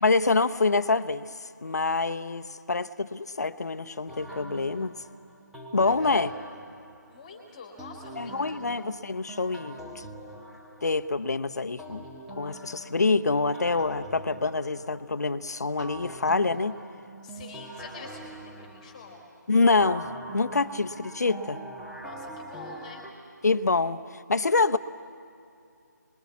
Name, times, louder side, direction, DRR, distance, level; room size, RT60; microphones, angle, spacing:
voice 1, 0.0-1.3 1.6-4.9 5.7-6.3 8.2-10.0 10.8-12.0 12.4-16.8 19.5-21.6 23.4-24.8, left 3 dB, 60° left, 10 dB, 0.9 m, -26 dB
sound 1, 4.1-7.2 7.8-11.3 11.8-15.3 15.8-19.3 19.8-23.1, right 1 dB, 5° right, 1.2 m, -43 dB
voice 2, 5.8-6.3 7.1-8.6 17.2-19.3 22.0-23.0, left 4 dB, 20° left, 2 dB, 2.3 m, -46 dB
27.0 x 21.5 x 8.4 m, 2.5 s
figure-of-eight pair, 160°, 10 cm